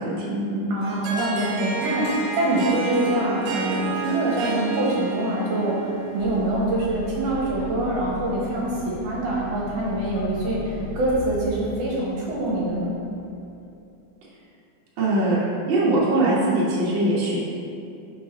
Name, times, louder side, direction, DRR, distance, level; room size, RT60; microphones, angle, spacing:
voice 1, 0.0-0.7 15.0-15.4 15.6-17.4, right 2 dB, 55° right, -7 dB, 1.4 m, -22 dB
voice 2, 0.7-12.9, right 1 dB, 70° right, -4 dB, 2.2 m, -25 dB
Harp, 0.8-6.6, right 4 dB, 85° right, 2.3 m, -30 dB
sound 1, 6.2-13.5, left 3 dB, 80° left, 1.7 m, -37 dB
5.8 x 4.0 x 5.6 m, 2.6 s
omnidirectional pair, 4.0 m